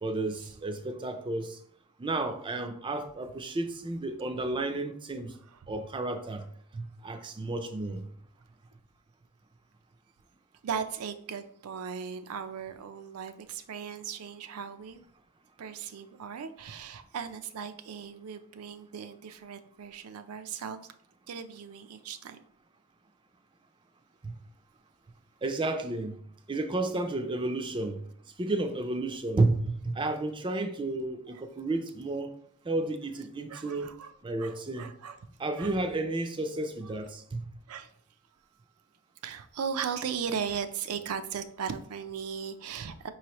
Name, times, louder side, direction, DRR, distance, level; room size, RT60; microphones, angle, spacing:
voice 1, 0.0-1.6 2.0-5.3 5.7-6.5 6.7-8.0 24.2-24.3 25.4-26.1 26.5-28.0 28.4-32.3 32.6-33.9 34.2-34.9 35.4-37.4, right 2 dB, 20° right, 0.4 m, -32 dB
voice 2, 10.6-15.0 15.6-20.8 21.3-22.4 31.3-31.4 33.5-34.1 34.4-35.2 35.6-35.8 37.7-37.9 39.2-43.1, right 7 dB, 85° right, 0.4 m, -37 dB
5.3 x 3.1 x 2.9 m
head